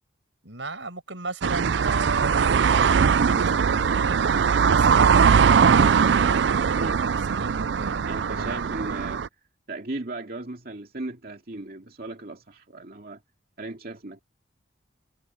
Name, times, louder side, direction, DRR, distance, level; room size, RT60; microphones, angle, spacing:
voice 1, 0.4-5.3 6.2-8.6, right 2 dB, 90° right, 6.4 m, -36 dB
sound 1, 1.4-9.3, right 6 dB, 70° right, 0.4 m, -20 dB
voice 2, 8.1-9.3 9.7-13.2 13.6-14.2, right 2 dB, 50° right, 2.5 m, -36 dB
head